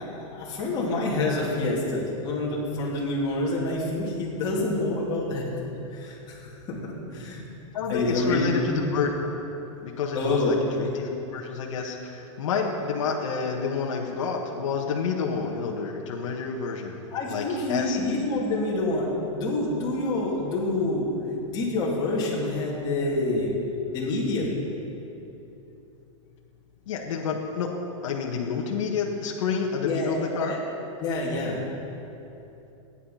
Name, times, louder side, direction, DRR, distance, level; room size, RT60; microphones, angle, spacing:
voice 1, 0.0-5.5 5.9-7.4 7.9-8.8 10.1-10.5 17.1-19.1 19.3-21.1 21.4-23.6 23.9-24.5 29.8-30.6 31.0-31.6, left 2 dB, 25° left, -5 dB, 2.8 m, -27 dB
voice 2, 7.7-9.3 9.8-16.9 17.3-18.0 26.9-27.7 28.0-30.6, left 5 dB, 70° left, 0 dB, 1.5 m, -29 dB
14.0 x 10.0 x 5.8 m, 3.0 s
supercardioid pair, 160°, 16 cm